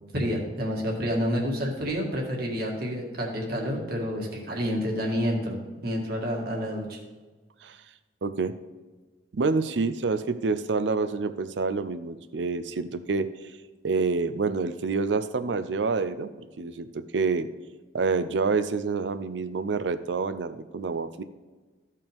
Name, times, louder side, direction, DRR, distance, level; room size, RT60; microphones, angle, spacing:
voice 1, 0.1-5.6 5.8-7.0, equal, 60° right, -1 dB, 1.9 m, -29 dB
voice 2, 8.2-8.5 9.3-13.3 13.8-16.3 16.6-17.5 17.9-21.2, right 4 dB, 85° right, 12 dB, 0.6 m, -27 dB
14.0 x 5.6 x 3.5 m, 1.3 s
head